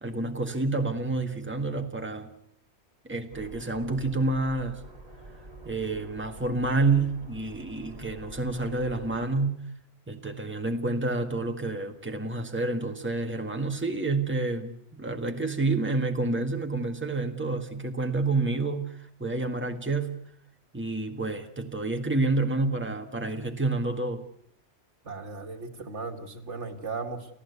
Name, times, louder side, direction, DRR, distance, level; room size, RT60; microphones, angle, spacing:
voice 1, 0.0-2.3 3.0-4.8 5.6-9.6 10.1-20.1 20.7-24.2, right 3 dB, 10° right, 1.7 m, -29 dB
sound 1, 3.3-9.3, right 1 dB, 40° right, 4.1 m, -46 dB
voice 2, 25.1-27.3, right 4 dB, 80° right, 2.2 m, -36 dB
30.0 x 14.5 x 8.2 m
omnidirectional pair, 1.2 m